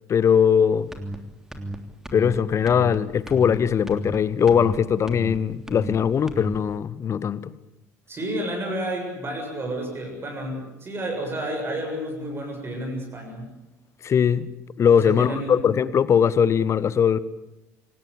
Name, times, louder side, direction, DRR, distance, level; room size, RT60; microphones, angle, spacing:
voice 1, 0.1-0.9 2.1-7.5 14.0-14.5 14.8-17.2, left 7 dB, 35° left, 18 dB, 1.2 m, -20 dB
sound 1, 0.9-1.2 1.5-1.8 2.0-2.4 2.7-3.0 3.3-3.6 3.9-4.2 4.5-4.8 5.1-5.4 5.7-6.0 6.3-6.6, right 1 dB, 5° right, 3.2 m, -33 dB
voice 2, 8.1-13.5 15.0-15.6, right 1 dB, 30° right, 2 dB, 7.4 m, -30 dB
26.5 x 18.5 x 8.5 m, 0.94 s
figure-of-eight pair, 60°, 8 cm